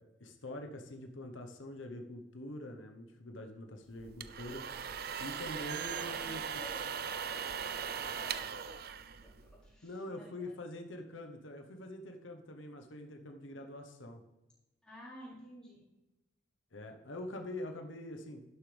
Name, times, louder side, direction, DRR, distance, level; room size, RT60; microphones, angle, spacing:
voice 1, 0.0-4.7 5.2-6.4 9.8-14.2 16.7-18.4, left 1 dB, 90° left, 4 dB, 1.1 m, -45 dB
sound 1, 4.0-9.7, right 7 dB, 55° right, 0.6 m, -39 dB
voice 2, 5.7-6.9 7.3-8.9 9.2-10.5 14.8-15.9, left 1 dB, 5° left, -8 dB, 4.5 m, -53 dB
11.5 x 11.5 x 3.4 m, 1.0 s
head